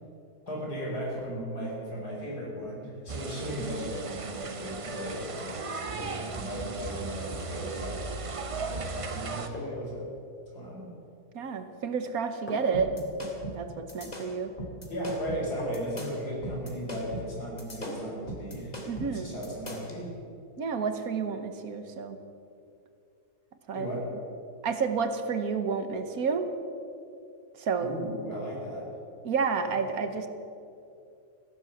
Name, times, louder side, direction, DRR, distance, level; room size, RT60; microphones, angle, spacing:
voice 1, 0.5-5.6 6.3-8.0 8.6-10.1 10.5-10.9 14.9-20.1 23.7-24.1 27.8-28.9 29.8-30.0, equal, 90° left, -4 dB, 5.3 m, -36 dB
sound 1, 3.1-9.5, right 4 dB, 45° right, 0.4 m, -36 dB
sound 2, 4.5-4.7 6.0-6.4 8.5-8.7 9.5-10.0 11.3-11.7 12.5-12.9 14.6-14.7 15.6-16.0 17.8-18.3 18.6-18.7, equal, 5° left, 3.6 m, -42 dB
voice 2, 11.3-12.9 13.2-14.5 18.9-19.4 20.6-22.2 23.7-23.9 24.6-26.5 27.6-27.9 29.2-30.3, right 5 dB, 70° right, 8 dB, 1.5 m, -30 dB
sound 3, 12.7-20.0, right 1 dB, 25° left, 2.2 m, -40 dB
15.5 x 11.0 x 7.1 m, 2.6 s
omnidirectional pair, 1.7 m